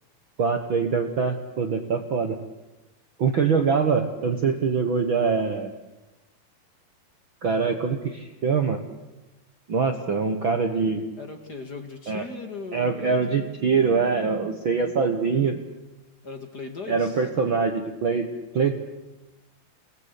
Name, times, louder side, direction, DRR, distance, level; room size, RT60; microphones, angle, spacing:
voice 1, 0.4-2.4 3.2-5.7 7.4-8.8 9.7-11.0 12.1-12.2 12.7-15.6 16.9-18.3 18.5-18.7, right 5 dB, 65° right, 5 dB, 1.2 m, -24 dB
voice 2, 11.2-13.4 16.2-17.3, left 4 dB, 35° left, 6 dB, 1.8 m, -38 dB
29.0 x 20.0 x 8.4 m, 1.1 s
omnidirectional pair, 4.4 m